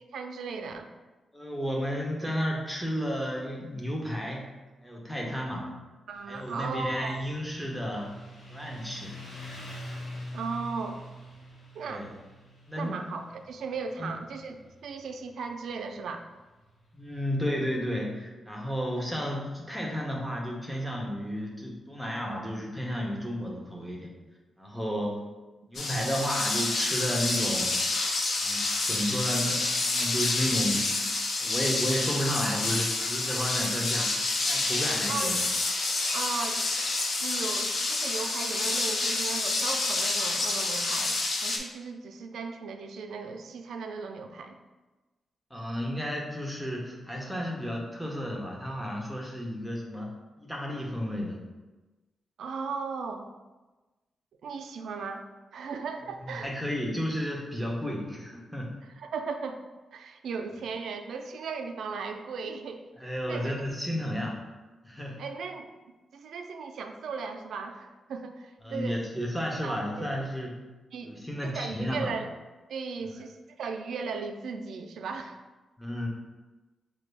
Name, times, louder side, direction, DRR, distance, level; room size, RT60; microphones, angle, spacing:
voice 1, 0.1-0.9 6.1-7.2 10.3-11.0 11.7-12.0 12.8-14.6 14.8-16.2 35.1-35.3 36.1-36.6 37.2-44.6 52.4-53.2 54.4-55.2 55.5-56.5 59.0-59.6 59.9-62.8 63.3-63.5 65.2-65.7 66.1-69.0 69.6-70.1 70.9-71.2 71.4-72.3 72.7-75.4, right 5 dB, 75° right, 5 dB, 0.3 m, -36 dB
voice 2, 1.3-4.5 4.8-5.7 6.3-8.1 8.5-9.1 11.8-12.0 12.7-13.0 14.0-14.2 16.9-24.1 24.6-25.2 25.7-27.7 28.4-30.9 31.4-35.4 45.5-50.1 50.4-51.4 56.2-58.8 63.0-64.4 64.8-65.2 68.6-70.6 71.0-72.1 75.8-76.1, equal, ahead, -2 dB, 0.6 m, -32 dB
Motorcycle, 6.1-17.2, left 1 dB, 65° left, 1.1 m, -45 dB
sound 1, 25.7-41.6, left 2 dB, 45° left, 0.5 m, -28 dB
5.1 x 2.2 x 3.2 m, 1.2 s
wide cardioid pair, 160°, 0 cm